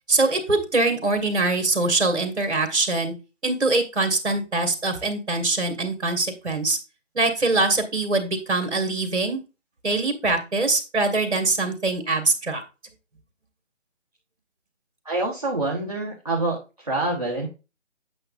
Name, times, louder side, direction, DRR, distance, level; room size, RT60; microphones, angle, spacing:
voice 1, 0.1-3.1 3.4-6.8 7.1-9.4 9.8-12.6, right 2 dB, 60° right, 6 dB, 2.0 m, -23 dB
voice 2, 15.0-17.5, right 2 dB, 30° right, -4 dB, 1.2 m, -26 dB
8.7 x 6.3 x 2.5 m, 0.29 s
figure-of-eight pair, 180°, 38 cm